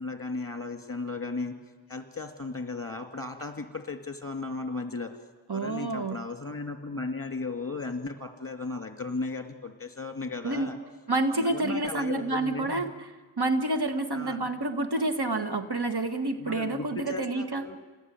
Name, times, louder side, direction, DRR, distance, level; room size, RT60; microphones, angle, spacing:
voice 1, 0.0-1.5 1.9-5.1 5.5-10.8 11.4-12.9 14.1-14.5 16.3-17.8, left 3 dB, 30° left, 7 dB, 2.5 m, -36 dB
voice 2, 5.5-6.2 10.4-10.7 11.1-12.9 13.4-17.7, right 2 dB, 55° right, 7 dB, 1.7 m, -28 dB
28.0 x 19.5 x 9.3 m, 1.4 s
wide cardioid pair, 45°, 46 cm